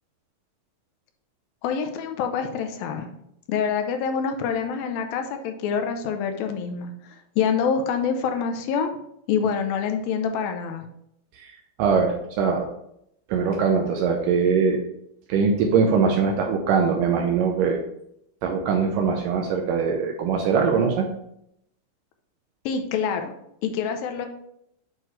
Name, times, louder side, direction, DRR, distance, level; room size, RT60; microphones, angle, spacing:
voice 1, 1.6-3.1 3.5-8.9 9.3-10.9 22.7-23.3 23.6-24.3, left 6 dB, 85° left, 6 dB, 2.5 m, -26 dB
voice 2, 11.8-12.7 13.3-14.8 15.3-17.8 18.4-21.0, right 5 dB, 80° right, 2 dB, 2.1 m, -22 dB
7.9 x 4.5 x 3.1 m, 0.75 s
omnidirectional pair, 4.2 m